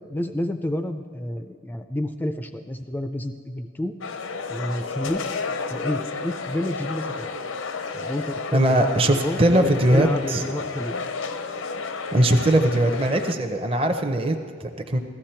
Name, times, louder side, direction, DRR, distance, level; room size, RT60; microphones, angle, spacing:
voice 1, 0.1-4.0 4.5-5.2 5.7-7.4 7.9-11.1, left 1 dB, 10° left, 8 dB, 0.3 m, -29 dB
sound 1, 4.0-13.3, left 4 dB, 90° left, 0.7 m, -32 dB
voice 2, 8.5-10.4 12.1-15.0, right 1 dB, 30° right, 5 dB, 0.6 m, -20 dB
15.0 x 13.0 x 4.4 m, 2.1 s
head